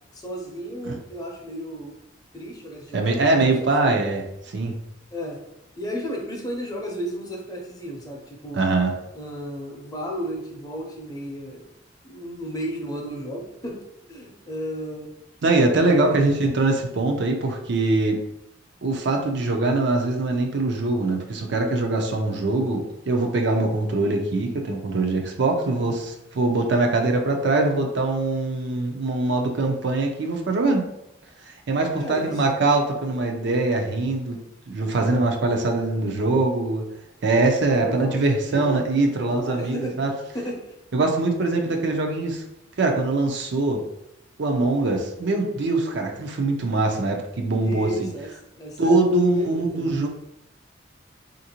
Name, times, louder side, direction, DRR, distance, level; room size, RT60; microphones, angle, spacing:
voice 1, 0.1-2.0 2.3-3.0 3.6-4.0 5.1-5.4 5.8-8.7 9.1-11.7 12.0-13.8 14.1-15.1 15.7-16.3 32.0-32.4 37.8-40.0 40.3-40.7 47.6-48.3 48.5-50.0, right 1 dB, 20° left, -1 dB, 0.6 m, -33 dB
voice 2, 2.9-4.2 4.5-4.7 8.5-8.9 15.4-18.2 18.8-30.9 31.5-34.4 34.7-36.8 37.2-40.1 40.9-42.4 42.8-43.8 44.4-48.1 48.8-50.1, right 2 dB, 65° right, 3 dB, 0.5 m, -22 dB
3.4 x 2.6 x 2.8 m, 0.83 s
head